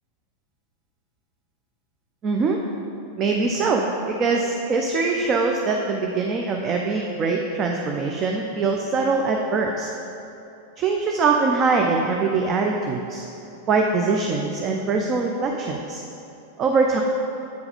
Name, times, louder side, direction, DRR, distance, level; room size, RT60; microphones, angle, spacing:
voice 1, 2.2-2.6 3.2-9.9 10.8-13.3 13.7-16.0 16.6-17.0, right 4 dB, 30° right, 1 dB, 0.5 m, -23 dB
7.9 x 4.7 x 5.0 m, 2.9 s
figure-of-eight pair, 90°, 0 cm